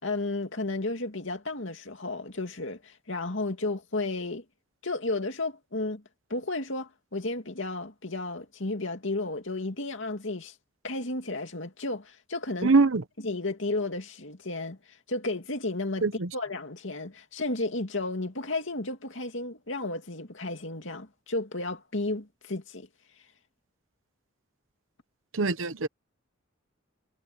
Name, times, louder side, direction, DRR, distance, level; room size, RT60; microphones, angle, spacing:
voice 1, 0.0-4.4 4.8-6.0 6.3-10.5 10.8-12.7 13.2-14.8 15.1-16.1 16.3-22.9, left 2 dB, 65° left, 2.6 m, -33 dB
voice 2, 12.6-13.0 16.0-16.3 25.3-25.9, right 3 dB, 75° right, 1.0 m, -23 dB
head